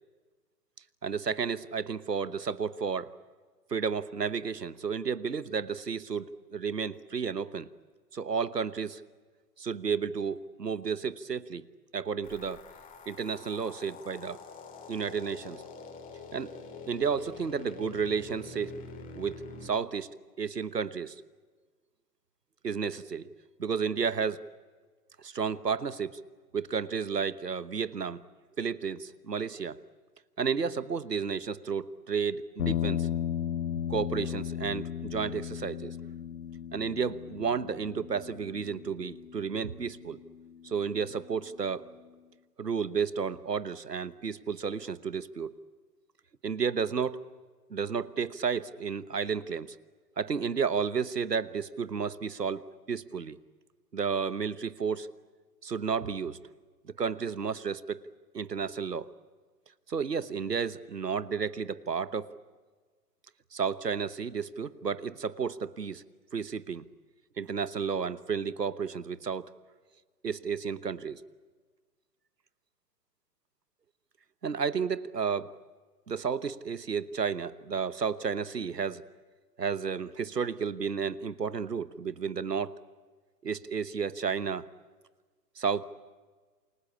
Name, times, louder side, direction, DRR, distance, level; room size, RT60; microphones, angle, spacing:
voice 1, 1.0-3.1 3.7-7.7 8.1-9.0 9.6-11.7 11.9-12.6 13.1-14.4 14.9-15.6 16.3-16.5 16.9-18.8 19.1-20.1 20.4-21.1 22.6-23.3 23.6-24.4 25.2-26.2 26.5-28.2 28.6-29.8 30.4-33.1 33.9-35.9 36.7-40.2 40.6-41.9 42.6-45.5 46.4-47.2 47.7-49.8 50.2-53.4 53.9-55.1 55.6-56.4 57.0-58.0 58.3-59.1 59.9-62.4 63.5-66.0 66.3-66.9 67.4-69.5 70.2-71.2 74.4-75.5 76.1-79.0 79.6-82.8 83.4-84.7 85.6-85.8, right 6 dB, 85° right, 17 dB, 1.2 m, -32 dB
sound 1, 12.2-19.7, left 4 dB, 15° left, 3.5 m, -46 dB
sound 2, 32.6-40.9, left 10 dB, 70° left, 1.0 m, -36 dB
28.5 x 21.5 x 8.4 m, 1.4 s
figure-of-eight pair, 120°, 47 cm